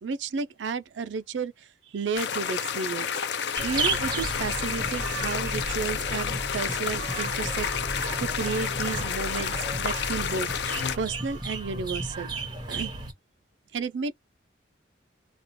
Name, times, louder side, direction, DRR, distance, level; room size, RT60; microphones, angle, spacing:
voice 1, 0.0-1.7 1.9-3.1 3.6-7.7 8.2-10.5 11.0-12.3 12.7-12.9 13.7-14.1, right 5 dB, 75° right, 0.4 m, -32 dB
sound 1, 2.1-11.0, left 7 dB, 65° left, 0.4 m, -30 dB
sound 2, 3.6-13.1, right 2 dB, 25° right, 0.9 m, -33 dB
2.4 x 2.2 x 3.9 m
head